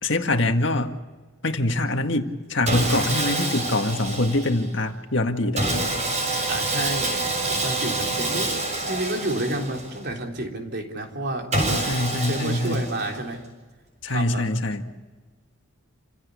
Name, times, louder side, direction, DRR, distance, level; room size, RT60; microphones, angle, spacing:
voice 1, 0.0-1.0 1.4-5.6 11.9-12.9 14.0-14.8, left 2 dB, 60° left, 5 dB, 1.9 m, -24 dB
Sawing, 2.7-4.7 5.6-10.1 11.5-13.3, right 2 dB, 35° right, 6.7 m, -27 dB
voice 2, 6.5-8.6 8.9-11.5 12.2-13.4 14.1-14.5, right 1 dB, 50° right, 2 dB, 3.7 m, -30 dB
28.5 x 16.5 x 8.4 m, 1.3 s
head